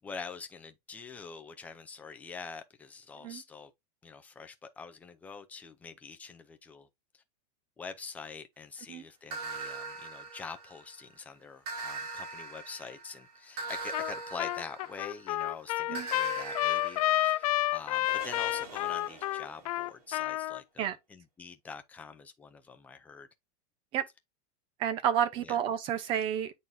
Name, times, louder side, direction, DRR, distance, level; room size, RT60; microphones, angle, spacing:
voice 1, 0.0-3.7 4.0-6.9 7.1-7.2 7.8-23.3 25.4-25.6, left 5 dB, 5° left, 0.5 m, -45 dB
sound 1, 9.3-11.0 11.7-15.3 16.0-19.7, right 3 dB, 70° right, 3.3 m, -41 dB
Trumpet, 13.9-14.1 14.4-20.6, left 16 dB, 65° left, 0.4 m, -30 dB
voice 2, 24.8-26.5, right 9 dB, 25° right, 0.8 m, -30 dB
8.9 x 3.9 x 2.7 m
supercardioid pair, 175°, 20 cm